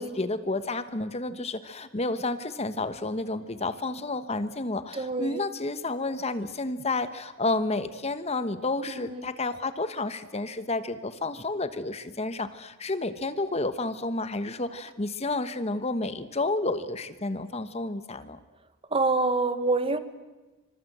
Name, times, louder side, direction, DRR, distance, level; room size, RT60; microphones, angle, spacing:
voice 1, 0.0-18.4, left 2 dB, 30° left, 12 dB, 1.2 m, -30 dB
voice 2, 4.9-5.4 8.8-9.3 18.9-20.0, right 3 dB, 30° right, 11 dB, 1.5 m, -27 dB
26.5 x 26.0 x 8.0 m, 1.2 s
head